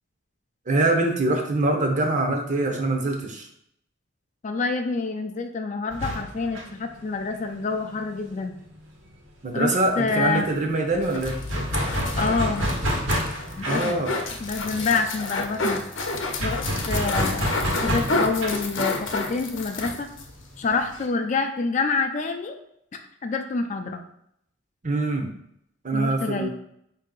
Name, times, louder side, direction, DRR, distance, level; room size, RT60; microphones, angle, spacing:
voice 1, 0.7-3.5 9.4-11.4 13.7-14.1 24.8-25.3 25.8-26.5, right 2 dB, 40° right, 3 dB, 0.7 m, -24 dB
voice 2, 4.4-8.5 9.5-10.4 12.2-12.7 13.6-14.0 14.4-15.8 16.4-16.6 16.9-17.5 17.7-20.1 20.6-22.6 23.2-24.0 25.9-26.5, left 4 dB, 35° left, 5 dB, 0.4 m, -27 dB
sound 1, 5.9-9.3 9.6-9.7 10.0-21.0, equal, 85° right, 1.3 m, -30 dB
sound 2, 10.9-20.3 20.6-20.7 20.9-21.1, left 3 dB, 70° left, 0.7 m, -30 dB
5.1 x 2.8 x 3.7 m, 0.74 s
head